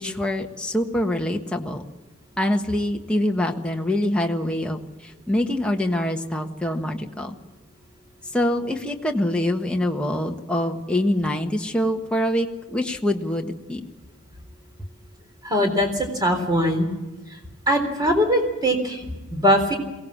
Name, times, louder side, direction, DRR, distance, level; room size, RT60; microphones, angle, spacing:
voice 1, 0.0-1.8 2.4-7.4 8.3-13.8, left 1 dB, 5° left, 2 dB, 1.4 m, -25 dB
voice 2, 15.4-16.9 17.3-17.4 17.7-19.7, equal, 20° right, 5 dB, 3.8 m, -21 dB
22.5 x 17.5 x 7.3 m, 1.2 s
head